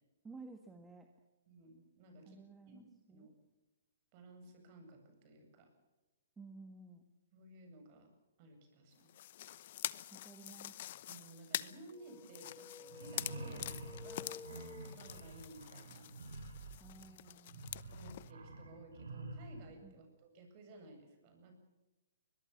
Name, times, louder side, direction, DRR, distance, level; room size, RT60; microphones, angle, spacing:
voice 1, 0.2-1.1 2.2-3.3 6.4-7.1 10.1-10.8 16.8-17.6 19.8-20.0, right 3 dB, 10° right, 5 dB, 1.6 m, -54 dB
voice 2, 1.5-2.4 2.7-2.8 3.1-3.3 4.1-5.7 7.3-8.1 8.4-9.1 11.1-14.4 14.8-16.1 17.9-21.5, right 2 dB, 35° right, 5 dB, 8.0 m, -56 dB
sound 1, 9.1-18.3, left 13 dB, 50° left, 0.9 m, -46 dB
sound 2, 11.9-15.5, left 4 dB, 5° left, 0.7 m, -53 dB
sound 3, 12.9-19.7, right 2 dB, 85° right, 6.8 m, -49 dB
23.0 x 21.5 x 7.3 m, 1.1 s
hypercardioid pair, 150°, 0 cm